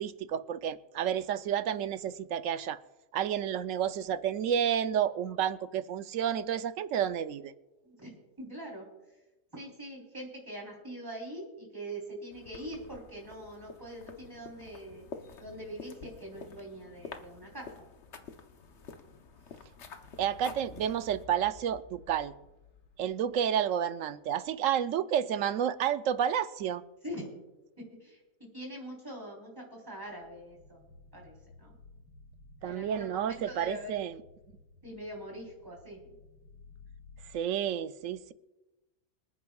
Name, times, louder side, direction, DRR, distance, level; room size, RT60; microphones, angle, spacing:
voice 1, 0.0-2.8 3.1-7.5 20.2-22.3 23.0-26.8 32.6-34.2 37.3-38.3, right 9 dB, 70° right, 0.9 m, -30 dB
voice 2, 7.8-8.9 9.5-15.0 15.4-17.7 27.0-27.3 27.8-30.8 31.1-31.7 32.6-33.9 34.8-36.0, right 1 dB, 15° right, 3.5 m, -43 dB
sound 1, 12.3-21.3, left 5 dB, 55° left, 1.1 m, -49 dB
sound 2, 18.6-24.6 24.9-25.1 25.4-25.7 29.8-37.4, left 4 dB, 85° left, 1.6 m, -56 dB
26.0 x 9.4 x 2.3 m
omnidirectional pair, 1.5 m